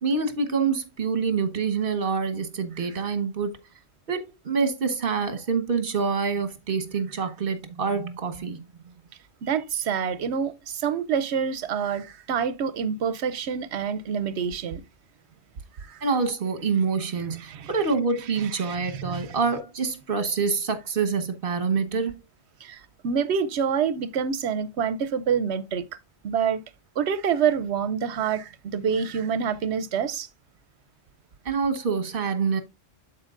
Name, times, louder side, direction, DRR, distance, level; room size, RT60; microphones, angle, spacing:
voice 1, 0.0-3.6 4.1-8.7 16.0-22.1 31.4-32.6, right 5 dB, 55° right, 1.4 m, -26 dB
voice 2, 9.4-14.8 15.8-16.0 17.5-17.7 18.6-19.4 22.6-25.8 26.2-26.6 27.0-30.3, right 7 dB, 80° right, 1.0 m, -27 dB
12.5 x 4.5 x 2.5 m
omnidirectional pair, 1.1 m